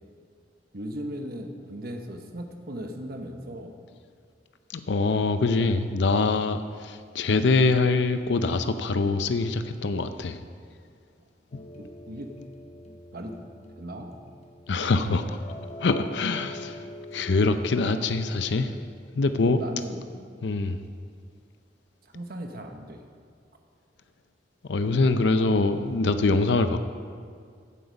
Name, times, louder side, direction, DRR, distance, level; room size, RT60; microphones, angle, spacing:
voice 1, 0.7-3.8 11.8-12.3 13.1-13.3 13.8-14.1 19.4-20.0 22.0-23.0, right 1 dB, 60° right, 4 dB, 1.1 m, -37 dB
voice 2, 4.7-10.4 14.7-15.4 15.8-16.9 17.1-18.8 19.1-19.6 20.4-20.8 24.7-26.8, left 3 dB, 75° left, 9 dB, 0.5 m, -24 dB
sound 1, 11.5-18.8, left 1 dB, 40° left, 1.1 m, -44 dB
15.0 x 7.9 x 5.3 m, 2.1 s
head